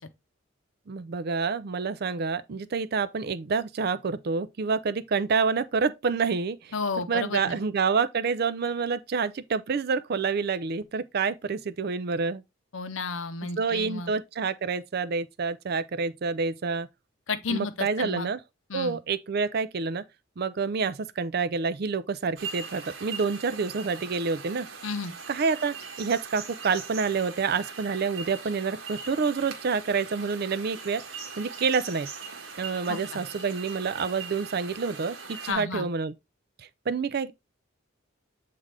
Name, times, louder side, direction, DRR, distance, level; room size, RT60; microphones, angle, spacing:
voice 1, 0.9-6.7 7.1-12.4 13.4-16.9 17.5-18.4 18.7-20.0 20.4-24.7 25.3-31.0 31.4-32.1 32.6-36.1 36.9-37.3, right 5 dB, 50° right, 0.4 m, -28 dB
voice 2, 6.7-7.6 12.7-14.1 17.3-18.3 18.7-19.0 24.8-25.1 32.9-33.2 35.5-35.9, left 4 dB, 70° left, 0.7 m, -32 dB
sound 1, 22.4-35.5, right 5 dB, 70° right, 1.3 m, -41 dB
7.7 x 3.6 x 3.3 m
head